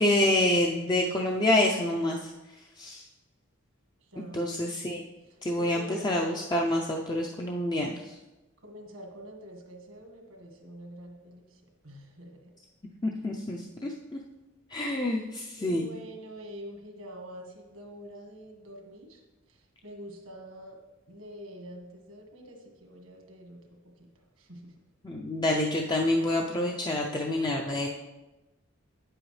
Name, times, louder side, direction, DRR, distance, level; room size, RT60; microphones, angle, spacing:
voice 1, 0.0-2.3 2.8-3.0 4.3-5.0 5.4-8.2 13.0-14.2 14.7-15.9 25.0-27.9, left 1 dB, 20° left, 0 dB, 0.4 m, -27 dB
voice 2, 4.1-4.7 5.5-6.3 8.6-12.4 15.1-15.2 15.6-19.2 19.5-20.8 21.1-24.1 24.4-24.7, equal, 80° right, 2 dB, 1.6 m, -46 dB
8.8 x 7.7 x 3.2 m, 1.1 s
head